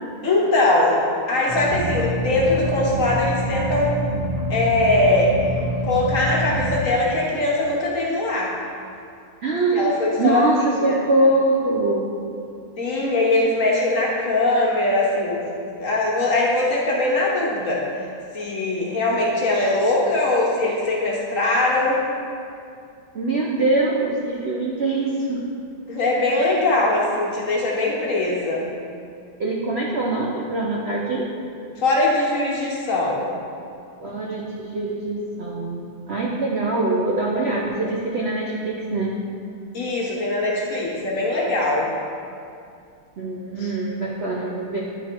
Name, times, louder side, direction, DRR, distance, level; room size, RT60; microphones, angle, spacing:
voice 1, 0.2-3.9 4.5-5.3 5.8-8.5 9.7-10.4 10.7-11.0 12.8-15.4 15.8-17.8 18.3-22.0 25.9-28.6 31.8-33.3 39.7-41.9 43.6-43.7, left 2 dB, 45° left, -4 dB, 1.3 m, -21 dB
sound 1, 1.5-6.8, right 1 dB, 25° right, 0.8 m, -26 dB
voice 2, 9.4-9.9 10.2-12.0 23.1-25.4 29.4-31.3 34.0-35.8 36.1-39.2 43.2-44.8, right 2 dB, 80° right, -3 dB, 0.5 m, -23 dB
10.0 x 4.4 x 4.4 m, 2.4 s
omnidirectional pair, 2.2 m